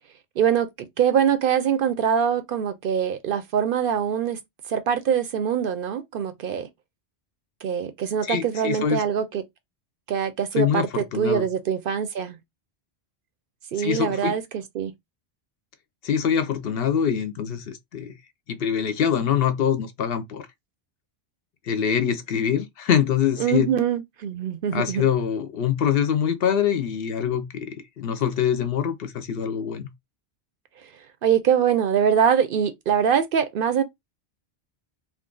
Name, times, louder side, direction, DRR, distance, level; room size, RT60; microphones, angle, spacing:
voice 1, 0.4-4.4 4.7-6.7 7.6-9.4 10.1-12.4 13.7-14.9 23.4-25.0 31.2-33.8, right 8 dB, 60° right, 0.7 m, -23 dB
voice 2, 8.3-9.0 10.6-11.4 13.8-14.4 16.0-18.1 18.5-20.5 21.7-23.7 24.7-27.7 28.0-29.9, left 8 dB, 65° left, 0.8 m, -24 dB
2.6 x 2.3 x 3.7 m
omnidirectional pair, 1.1 m